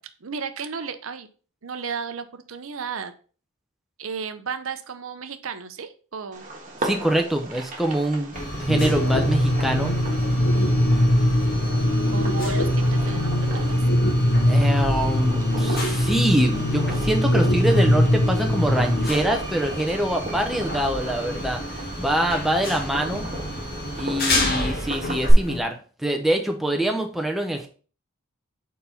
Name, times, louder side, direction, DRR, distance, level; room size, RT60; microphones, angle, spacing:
voice 1, 0.2-1.3 1.6-3.1 4.0-6.5 12.1-13.8, right 5 dB, 70° right, 10 dB, 0.7 m, -34 dB
Fireworks, 6.3-25.3, right 1 dB, 35° right, 1.6 m, -35 dB
voice 2, 6.8-8.3 8.6-9.9 14.5-23.2 24.0-27.7, right 1 dB, ahead, 2 dB, 0.8 m, -25 dB
sound 1, 8.3-25.6, left 1 dB, 45° left, 1.6 m, -31 dB
sound 2, 8.7-19.1, left 1 dB, 80° left, 1.0 m, -21 dB
4.6 x 4.1 x 5.7 m, 0.38 s
head